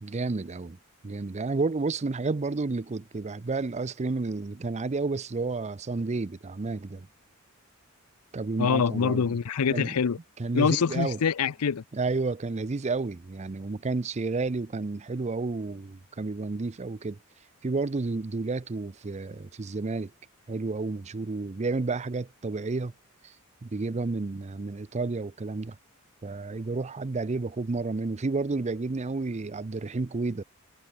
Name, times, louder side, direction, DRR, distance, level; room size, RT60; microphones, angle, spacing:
voice 1, 0.0-0.8 1.0-7.1 8.3-9.2 9.7-10.0 10.4-11.2 11.9-17.2 17.6-20.1 20.5-22.9 23.2-23.3 23.6-25.8 26.2-30.4, right 3 dB, 30° right, 0.5 m, -31 dB
voice 2, 8.6-10.2 10.5-11.8, left 6 dB, 85° left, 0.5 m, -25 dB
head